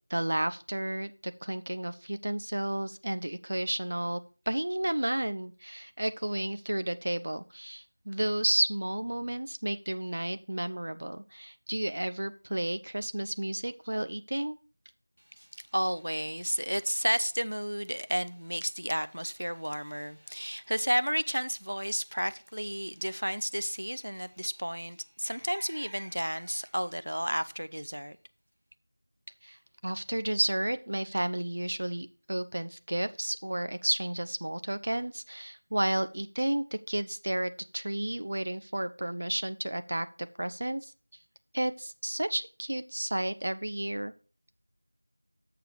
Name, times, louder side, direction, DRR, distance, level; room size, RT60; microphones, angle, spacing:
voice 1, 0.1-14.6 29.4-29.6 29.8-40.1 40.4-40.9 41.5-44.1, right 1 dB, 40° right, 0.5 m, -32 dB
voice 2, 15.4-28.2, equal, 85° right, 0.6 m, -32 dB
6.7 x 6.7 x 4.4 m
figure-of-eight pair, 175°, 0 cm